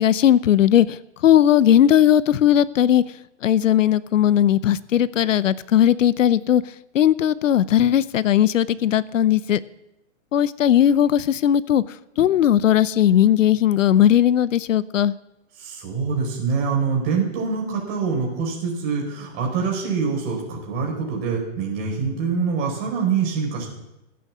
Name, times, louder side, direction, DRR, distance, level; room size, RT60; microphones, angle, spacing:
voice 1, 0.0-3.0 3.4-6.6 6.9-9.6 10.3-11.8 12.2-15.1, left 10 dB, 75° left, 18 dB, 0.7 m, -17 dB
voice 2, 15.6-23.7, right 5 dB, 25° right, 0 dB, 4.6 m, -25 dB
15.5 x 8.6 x 7.2 m, 0.91 s
hypercardioid pair, 155°, 38 cm